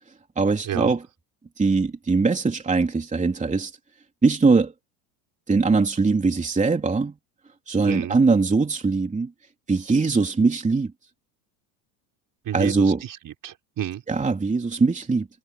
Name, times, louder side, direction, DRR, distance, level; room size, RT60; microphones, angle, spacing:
voice 1, 0.4-1.0 1.6-3.7 4.2-4.7 5.5-7.1 7.7-9.3 9.7-10.9 12.5-13.0 14.1-15.3, right 4 dB, 15° right, 3.3 m, -21 dB
voice 2, 7.8-8.2 12.4-14.0, right 11 dB, 45° right, 5.0 m, -31 dB
supercardioid pair, 110°, 47 cm